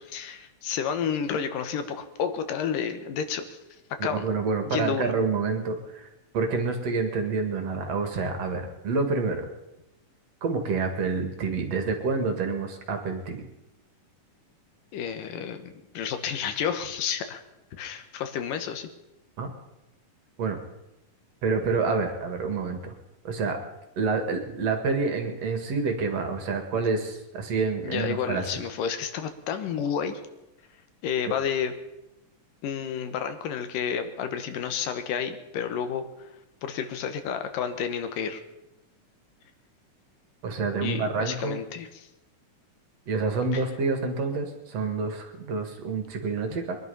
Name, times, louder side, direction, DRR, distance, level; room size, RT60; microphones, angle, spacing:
voice 1, 0.0-3.6 4.0-4.3 4.7-5.1 14.9-17.4 17.8-18.9 27.8-30.2 31.0-31.7 32.6-36.3 36.6-38.4 40.8-42.1 43.5-43.6, left 7 dB, 85° left, 9 dB, 2.9 m, -30 dB
voice 2, 4.1-6.1 6.3-9.5 10.4-13.4 19.4-19.5 20.4-20.6 21.4-22.9 23.2-23.6 24.0-28.5 40.4-41.6 43.1-46.8, right 4 dB, 55° right, 5 dB, 2.7 m, -28 dB
22.5 x 11.0 x 5.5 m, 0.94 s
omnidirectional pair, 3.7 m